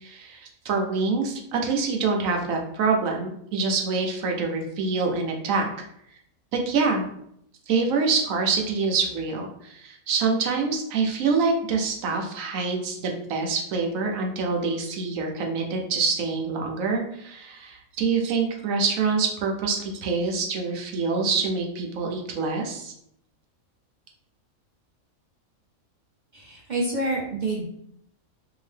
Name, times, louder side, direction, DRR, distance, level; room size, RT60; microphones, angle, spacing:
voice 1, 0.0-5.7 6.5-7.1 7.7-22.9, right 4 dB, 80° right, 2 dB, 1.0 m, -26 dB
voice 2, 26.3-27.7, right 2 dB, 55° right, -3 dB, 0.5 m, -27 dB
2.8 x 2.6 x 3.2 m, 0.72 s
omnidirectional pair, 1.4 m